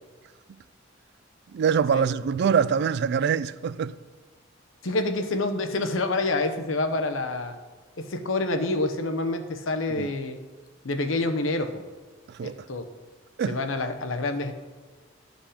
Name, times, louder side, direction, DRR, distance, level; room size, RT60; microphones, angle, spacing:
voice 1, 1.5-3.9 10.0-10.1 12.3-12.6 13.4-13.6, right 7 dB, 60° right, 0.3 m, -24 dB
voice 2, 4.8-7.6 8.0-10.4 10.8-11.8 12.4-12.9 13.5-14.5, left 2 dB, 80° left, 0.9 m, -27 dB
11.5 x 5.2 x 5.0 m
head